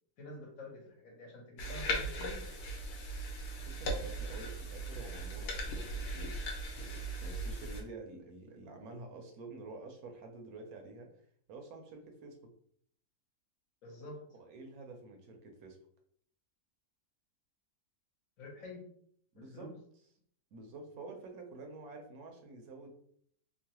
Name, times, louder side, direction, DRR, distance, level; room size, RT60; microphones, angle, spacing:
voice 1, 0.2-2.4 13.8-14.2 18.4-18.8 19.3-19.7, left 2 dB, 65° left, 0 dB, 1.2 m, -48 dB
sound 1, 1.6-7.8, right 1 dB, 90° left, 1.1 m, -38 dB
voice 2, 3.6-6.4 7.2-11.1 11.5-12.5 14.4-15.8 19.3-19.7 20.5-22.9, right 3 dB, 75° right, 4 dB, 1.0 m, -49 dB
3.0 x 2.0 x 2.8 m, 0.64 s
omnidirectional pair, 1.6 m